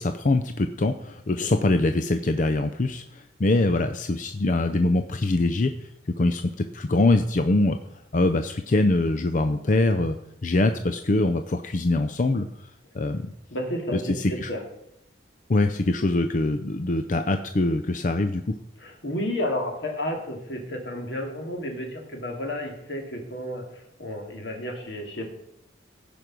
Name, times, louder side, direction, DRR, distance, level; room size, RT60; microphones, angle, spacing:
voice 1, 0.0-5.7 6.2-7.8 8.1-10.2 10.4-12.7 12.9-13.3 13.9-14.5 15.5-18.6, left 2 dB, 45° left, 8 dB, 0.5 m, -23 dB
voice 2, 13.5-14.6 18.8-25.3, left 1 dB, 80° left, 2 dB, 2.5 m, -32 dB
16.0 x 5.3 x 6.1 m, 0.78 s
head